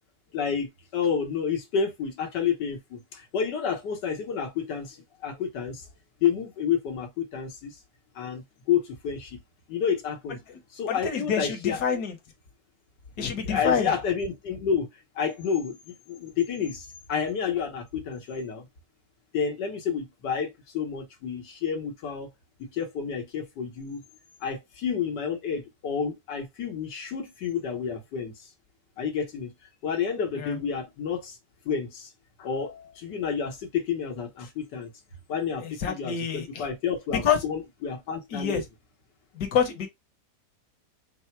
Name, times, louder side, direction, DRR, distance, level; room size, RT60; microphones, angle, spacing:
voice 1, 0.3-0.7 0.9-5.9 6.2-7.8 8.2-9.4 9.7-10.4 10.7-11.8 13.4-14.9 15.2-18.7 19.3-22.3 22.7-24.0 24.4-28.5 29.0-29.5 29.8-31.4 31.7-32.1 32.4-34.9 35.3-38.6, left 7 dB, 85° left, 1.7 m, -30 dB
voice 2, 10.9-12.1 13.2-13.9 30.4-30.6 35.6-36.6 37.2-37.4 38.3-38.6 39.3-39.9, left 7 dB, 70° left, 1.5 m, -27 dB
4.7 x 2.0 x 4.4 m
omnidirectional pair, 1.8 m